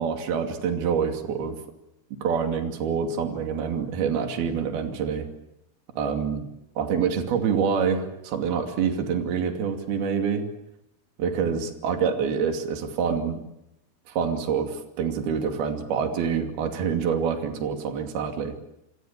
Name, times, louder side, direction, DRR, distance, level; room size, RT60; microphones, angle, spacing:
voice 1, 0.0-1.6 2.2-5.3 6.0-6.5 6.8-10.5 11.2-13.4 14.1-18.6, right 6 dB, 65° right, 5 dB, 4.4 m, -26 dB
28.0 x 25.0 x 7.4 m, 0.83 s
omnidirectional pair, 4.9 m